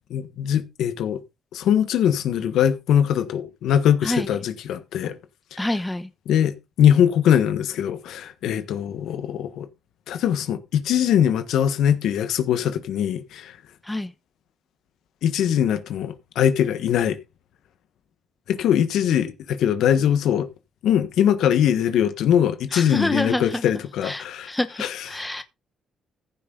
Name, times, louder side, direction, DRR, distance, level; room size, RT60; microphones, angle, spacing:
voice 1, 0.1-1.2 1.5-5.2 6.3-9.7 10.1-13.6 15.2-17.2 18.5-20.5 20.8-24.5 24.8-25.0, left 9 dB, 80° left, 1.4 m, -21 dB
voice 2, 5.6-6.1 13.8-14.1 22.7-23.7 24.0-25.4, left 1 dB, 10° left, 1.0 m, -27 dB
14.5 x 7.8 x 3.9 m
cardioid pair, 90°, 0 cm